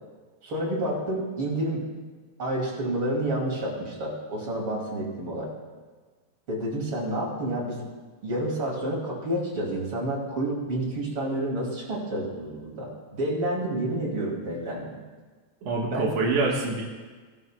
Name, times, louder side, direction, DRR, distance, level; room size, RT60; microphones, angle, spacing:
voice 1, 0.4-1.8 2.4-5.5 6.5-7.9 8.2-15.0 15.9-16.1, right 1 dB, 45° right, -4 dB, 3.0 m, -29 dB
voice 2, 15.6-16.8, right 3 dB, 60° right, -5 dB, 2.3 m, -25 dB
17.5 x 12.0 x 2.2 m, 1.4 s
omnidirectional pair, 3.5 m